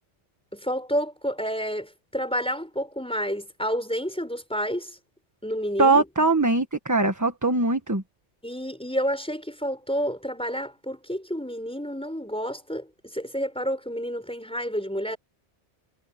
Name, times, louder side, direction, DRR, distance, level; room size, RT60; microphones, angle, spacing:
voice 1, 0.5-5.0 5.4-6.0 8.4-15.2, equal, 5° left, 5.9 m, -30 dB
voice 2, 5.8-8.0, right 3 dB, 15° right, 1.3 m, -21 dB
omnidirectional pair, 1.2 m